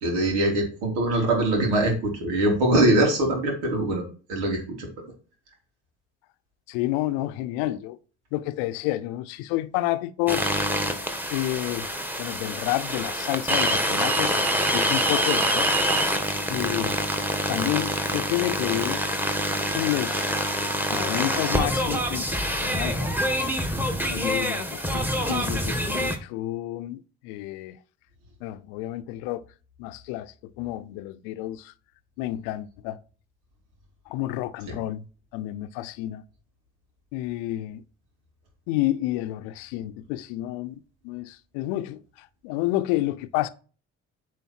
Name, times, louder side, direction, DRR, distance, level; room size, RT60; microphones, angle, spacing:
voice 1, 0.0-4.0 4.3-4.9 34.7-34.8, right 1 dB, 85° right, 3.5 m, -23 dB
voice 2, 6.7-8.0 8.3-10.5 11.3-11.9 12.2-15.7 16.5-17.0 17.5-19.0 19.7-20.3 20.9-23.1 24.1-27.8 28.4-29.4 29.8-31.7 32.2-33.0 34.1-35.0 35.3-36.2 37.1-37.8 38.7-42.0 42.4-43.5, left 15 dB, 80° left, 0.7 m, -30 dB
sound 1, 10.3-26.2, equal, 5° right, 2.0 m, -26 dB
9.2 x 5.0 x 4.6 m
hypercardioid pair, 55°, 34 cm